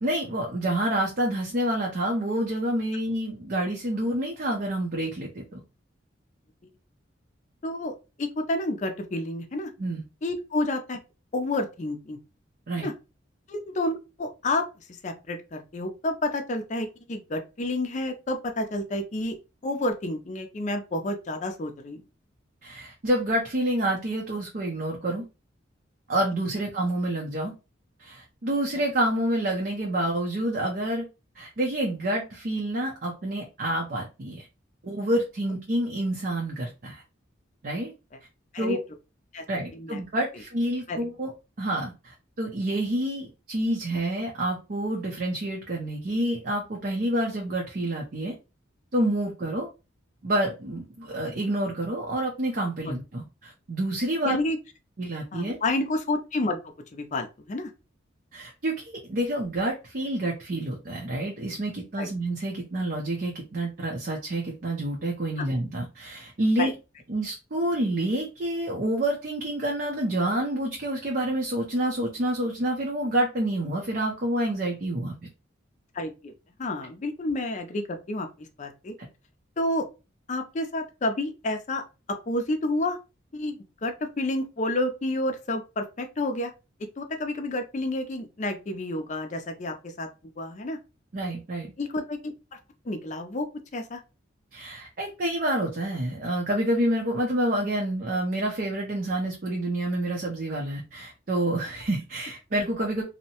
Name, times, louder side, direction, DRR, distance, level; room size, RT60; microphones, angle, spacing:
voice 1, 0.0-5.4 9.8-10.0 12.7-12.9 22.6-25.3 26.1-27.5 28.0-31.1 31.4-34.5 34.8-37.0 37.6-37.9 38.6-38.8 39.5-41.3 41.6-48.3 48.9-49.7 50.2-54.4 55.0-55.6 58.3-66.7 67.1-75.1 79.0-79.1 91.1-91.7 94.5-103.0, right 1 dB, 45° right, -1 dB, 0.5 m, -28 dB
voice 2, 7.6-7.9 8.2-9.7 10.2-11.0 11.3-12.2 12.8-12.9 13.5-14.6 15.0-19.4 19.6-22.0 38.5-38.8 39.3-39.4 39.7-40.0 40.9-41.1 52.8-52.9 54.2-54.6 55.3-57.7 62.0-62.1 65.4-65.5 66.6-66.7 75.9-76.3 76.6-78.9 79.6-79.9 80.3-81.8 82.3-83.0 83.3-86.5 86.8-90.1 90.4-90.8 91.8-92.3 92.9-93.5 93.7-94.0, left 2 dB, 40° left, 5 dB, 0.4 m, -30 dB
2.7 x 2.1 x 2.8 m, 0.29 s
head